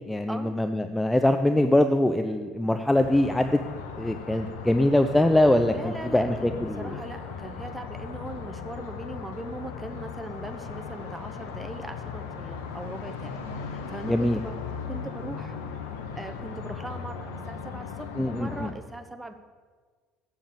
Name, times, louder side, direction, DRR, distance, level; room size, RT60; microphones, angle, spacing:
voice 1, 0.0-3.6 3.9-6.9 14.0-14.4 18.2-18.7, left 1 dB, 10° left, 7 dB, 0.5 m, -23 dB
sound 1, 2.9-18.7, left 6 dB, 75° left, 0.9 m, -38 dB
voice 2, 5.7-14.6 14.9-15.6 16.1-19.3, right 1 dB, 10° right, 6 dB, 1.0 m, -40 dB
7.1 x 6.9 x 7.5 m, 1.5 s
figure-of-eight pair, 60°, 0 cm